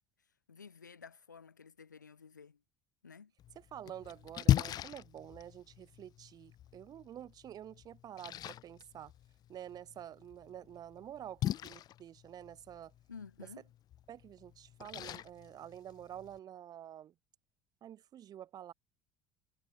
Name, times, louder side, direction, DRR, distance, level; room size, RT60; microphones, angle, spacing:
voice 1, 0.5-2.6 3.0-3.3 13.1-13.6, left 6 dB, 80° left, 6.9 m, -52 dB
Splash splatter, 3.4-16.4, left 12 dB, 45° left, 1.3 m, -39 dB
voice 2, 3.5-9.1 9.5-12.9 14.1-17.1 17.8-18.7, right 10 dB, 40° right, 8.0 m, -49 dB
figure-of-eight pair, 60°, 10 cm